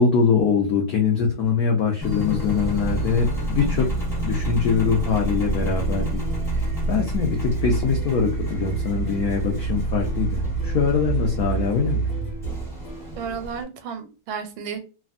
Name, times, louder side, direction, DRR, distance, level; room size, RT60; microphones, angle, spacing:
voice 1, 0.0-3.9 4.2-6.2 6.5-12.1, left 5 dB, 80° left, 1 dB, 0.8 m, -23 dB
sound 1, 1.3-4.9 5.2-13.4, equal, 45° left, 1.4 m, -44 dB
Engine, 2.0-13.6, right 2 dB, 5° left, 0.6 m, -27 dB
voice 2, 3.6-3.9 13.2-14.8, right 6 dB, 85° right, 7 dB, 1.4 m, -33 dB
3.3 x 2.1 x 2.4 m, 0.32 s
omnidirectional pair, 2.2 m